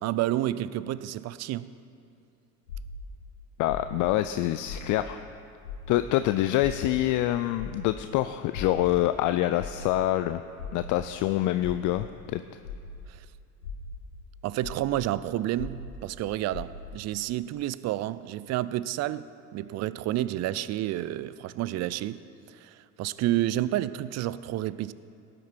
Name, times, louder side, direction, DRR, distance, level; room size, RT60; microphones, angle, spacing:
voice 1, 0.0-1.7 13.1-13.2 14.4-22.2 22.5-24.9, right 14 dB, 35° right, 0.4 m, -30 dB
sound 1, 2.7-5.3 5.6-13.2 13.5-17.1, left 4 dB, 85° left, 1.7 m, -41 dB
voice 2, 3.6-5.2 5.9-10.4 10.7-12.4, left 14 dB, 45° left, 0.5 m, -26 dB
17.0 x 8.9 x 4.5 m
figure-of-eight pair, 60°, 46 cm